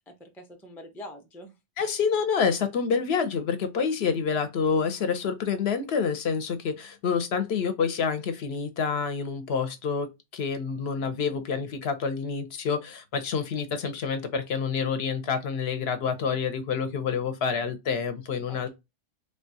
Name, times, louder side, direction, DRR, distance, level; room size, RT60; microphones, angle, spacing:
voice 1, 0.1-1.5 18.5-18.7, left 1 dB, 5° left, 0.4 m, -44 dB
voice 2, 1.8-10.1 10.3-18.7, left 6 dB, 65° left, 0.7 m, -28 dB
3.4 x 2.2 x 2.6 m
omnidirectional pair, 1.2 m